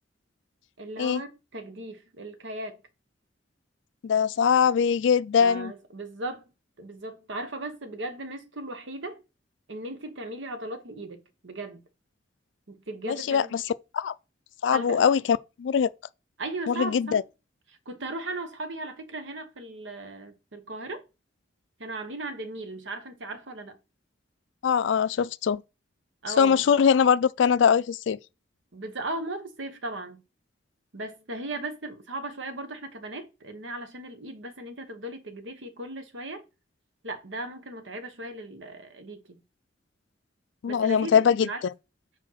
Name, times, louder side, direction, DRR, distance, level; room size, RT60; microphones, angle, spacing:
voice 1, 0.8-2.8 5.4-6.4 6.8-9.2 9.7-11.8 12.7-13.6 14.7-15.0 16.4-17.2 17.7-21.0 21.8-23.8 26.2-26.6 28.7-30.2 30.9-36.4 37.0-39.4 40.7-41.6, right 2 dB, 80° right, 1.1 m, -37 dB
voice 2, 4.0-5.7 13.1-13.6 13.9-14.1 14.6-15.9 16.7-17.2 24.6-25.6 26.4-28.2 40.6-41.7, left 7 dB, 75° left, 0.3 m, -22 dB
4.9 x 4.5 x 5.7 m
head